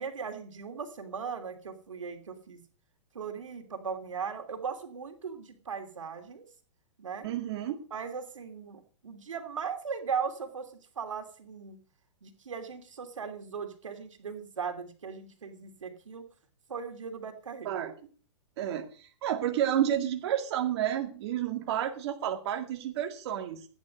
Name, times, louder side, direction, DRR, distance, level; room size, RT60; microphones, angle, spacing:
voice 1, 0.0-2.6 3.1-6.4 7.0-7.3 7.9-11.8 12.2-16.2 16.7-17.7, right 6 dB, 90° right, 6 dB, 3.0 m, -38 dB
voice 2, 7.2-7.8 17.6-17.9 18.6-23.7, right 10 dB, 55° right, 5 dB, 2.0 m, -30 dB
16.0 x 9.9 x 5.2 m, 0.40 s
hypercardioid pair, 135°, 16 cm